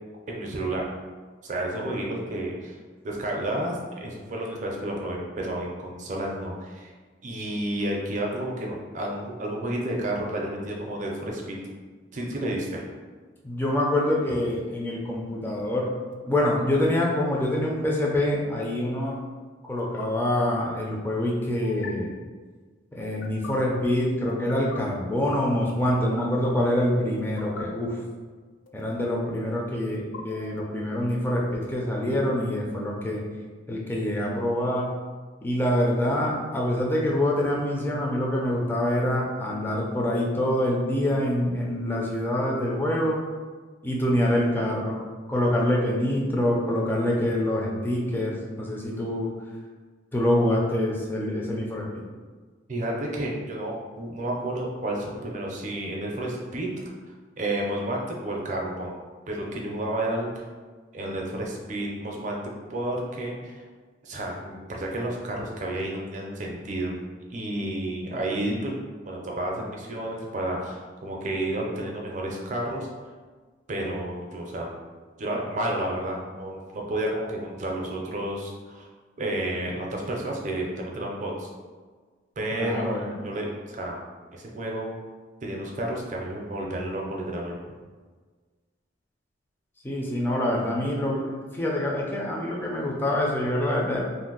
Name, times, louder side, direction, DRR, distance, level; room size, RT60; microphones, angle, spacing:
voice 1, 0.3-0.9 1.4-2.8 3.0-6.9 7.2-11.6 12.1-12.8 52.7-56.7 57.4-59.0 59.3-60.4 60.9-62.4 62.7-63.5 64.0-66.9 67.3-68.7 69.0-72.9 73.7-74.8 75.2-78.9 79.2-81.5 82.4-83.0 83.2-84.0 84.3-85.0 85.4-87.6, right 1 dB, 40° right, -1 dB, 0.5 m, -31 dB
voice 2, 13.4-15.9 16.3-19.2 19.6-22.1 23.0-28.0 28.7-33.2 33.7-34.9 35.4-43.2 43.8-45.0 45.3-49.3 50.1-52.0 82.5-83.1 89.8-94.0, left 1 dB, 10° left, -3 dB, 0.4 m, -25 dB
sound 1, 16.1-16.4 18.2-18.4 19.8-20.1 21.6-21.9 23.0-23.5 24.3-24.8 25.8-26.3 27.2-27.6 28.7-29.2 29.9-30.8, left 4 dB, 85° left, 0.3 m, -43 dB
2.6 x 2.0 x 3.8 m, 1.4 s
head